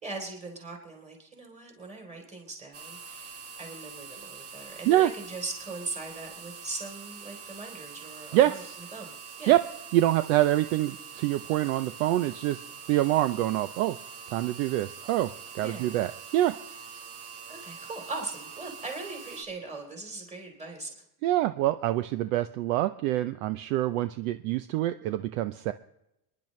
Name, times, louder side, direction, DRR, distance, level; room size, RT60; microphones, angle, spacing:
voice 1, 0.0-8.6 8.9-9.5 15.6-16.0 17.5-20.9, right 3 dB, 15° right, 1 dB, 3.3 m, -40 dB
sound 1, 2.7-19.4, right 6 dB, 30° right, 1.5 m, -44 dB
voice 2, 8.3-8.8 9.5-9.6 9.9-12.6 12.9-14.0 14.3-15.3 15.5-16.6 21.2-25.7, right 14 dB, 55° right, 11 dB, 0.6 m, -25 dB
29.0 x 10.5 x 3.2 m, 0.87 s
cardioid pair, 175°, 48 cm